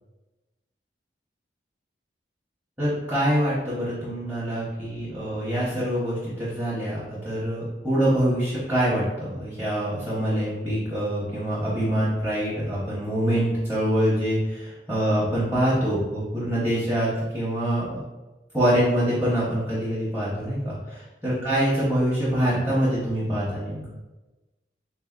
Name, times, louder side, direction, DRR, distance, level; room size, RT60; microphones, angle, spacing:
voice 1, 2.8-14.6 14.9-18.0 18.5-23.8, equal, 15° right, -10 dB, 0.9 m, -25 dB
3.8 x 2.7 x 2.4 m, 1.1 s
head